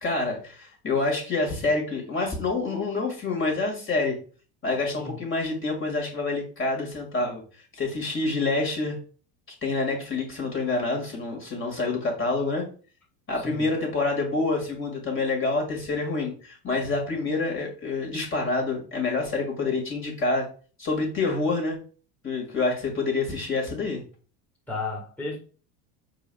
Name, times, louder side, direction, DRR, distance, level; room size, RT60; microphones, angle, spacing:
voice 1, 0.0-4.2 4.6-7.4 7.7-9.0 9.6-12.7 13.3-20.5 20.8-21.8 22.2-24.0, left 3 dB, 25° left, 2.0 m, -27 dB
voice 2, 13.4-13.7 24.7-25.4, left 3 dB, 5° left, 1.7 m, -33 dB
4.8 x 4.8 x 2.3 m
hypercardioid pair, 100°, 50 cm